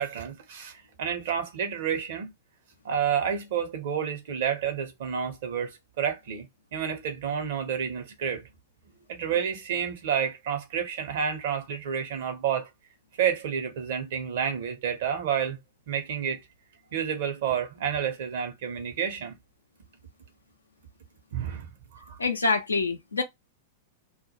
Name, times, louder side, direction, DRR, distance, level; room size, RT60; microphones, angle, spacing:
voice 1, 0.0-2.3 2.8-8.5 9.1-12.7 13.2-15.6 15.9-16.4 16.9-19.4 21.3-22.2, right 8 dB, 65° right, 0.9 m, -30 dB
voice 2, 22.2-23.2, left 3 dB, 90° left, 0.6 m, -26 dB
2.4 x 2.3 x 2.9 m
hypercardioid pair, 100°, 0 cm